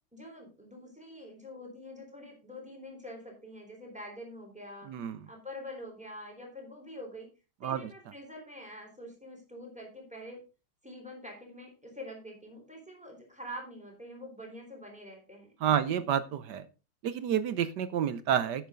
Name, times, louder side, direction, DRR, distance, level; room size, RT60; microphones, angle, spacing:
voice 1, 0.1-4.9 5.3-7.3 7.6-10.4 10.8-15.8, left 1 dB, 5° right, 1 dB, 3.8 m, -46 dB
voice 2, 4.9-5.2 7.6-7.9 15.6-16.7 17.0-18.7, right 9 dB, 65° right, 14 dB, 1.1 m, -29 dB
11.0 x 8.3 x 3.7 m, 0.30 s
omnidirectional pair, 2.3 m